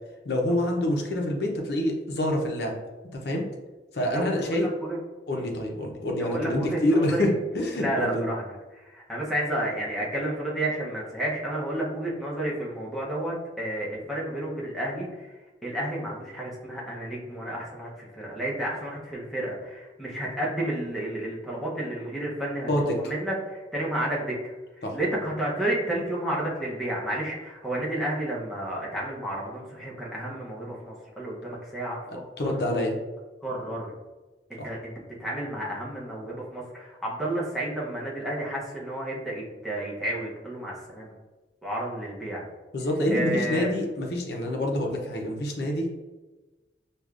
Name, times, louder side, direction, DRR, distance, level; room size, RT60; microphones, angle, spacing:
voice 1, 0.2-2.7 3.2-3.5 3.9-4.7 5.3-8.3 22.7-23.0 24.8-25.0 32.1-33.0 34.6-34.7 42.7-45.9, left 1 dB, 60° left, 1 dB, 0.6 m, -26 dB
voice 2, 4.1-5.0 5.3-5.5 6.2-7.3 7.7-15.3 15.6-24.5 24.9-32.0 32.4-32.6 33.4-33.9 34.5-34.9 35.2-41.1 41.6-42.4 43.1-43.7, right 1 dB, ahead, -5 dB, 0.7 m, -31 dB
4.8 x 2.3 x 2.4 m, 1.2 s
head